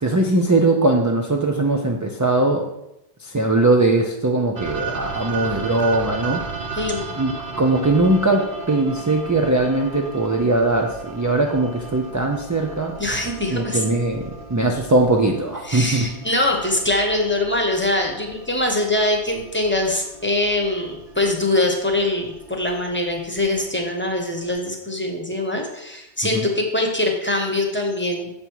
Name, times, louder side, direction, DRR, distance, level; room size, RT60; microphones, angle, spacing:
voice 1, 0.0-2.7 3.2-6.4 7.2-13.0 13.5-16.2 26.2-26.4, right 2 dB, 25° right, 1 dB, 0.4 m, -20 dB
sound 1, 4.6-24.5, right 4 dB, 55° right, 1.1 m, -36 dB
voice 2, 6.7-7.1 13.0-13.8 15.6-28.3, left 1 dB, 10° left, 1 dB, 0.9 m, -23 dB
7.0 x 5.2 x 4.6 m, 0.89 s
omnidirectional pair, 1.1 m